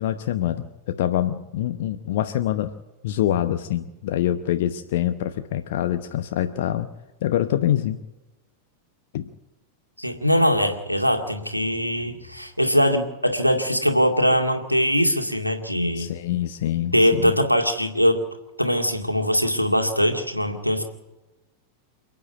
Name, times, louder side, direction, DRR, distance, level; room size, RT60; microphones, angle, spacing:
voice 1, 0.0-2.7 3.0-6.9 7.2-8.0 9.1-9.3 16.0-17.3, left 12 dB, 55° left, 8 dB, 0.9 m, -25 dB
voice 2, 10.0-16.1 16.9-18.2 18.6-20.8, equal, 90° left, 4 dB, 2.2 m, -21 dB
28.5 x 9.5 x 9.7 m, 1.0 s
figure-of-eight pair, 90°, 0 cm